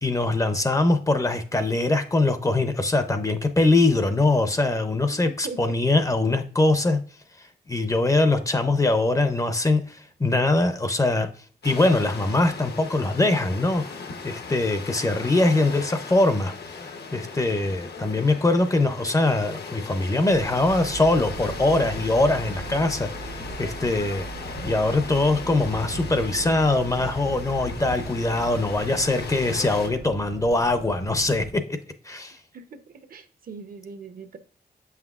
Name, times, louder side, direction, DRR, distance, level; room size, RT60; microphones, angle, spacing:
voice 1, 0.0-7.0 7.7-11.3 11.6-16.5 17.1-24.3 24.6-31.8 32.0-32.4, left 2 dB, 20° left, 8 dB, 0.5 m, -22 dB
voice 2, 5.2-5.7 32.5-32.6 33.1-34.4, right 4 dB, 60° right, 9 dB, 0.7 m, -39 dB
sound 1, 11.6-29.9, left 4 dB, 75° left, 0.9 m, -37 dB
sound 2, 20.3-31.5, right 4 dB, 90° right, 0.9 m, -39 dB
7.4 x 5.8 x 2.4 m, 0.43 s
wide cardioid pair, 150°, 17 cm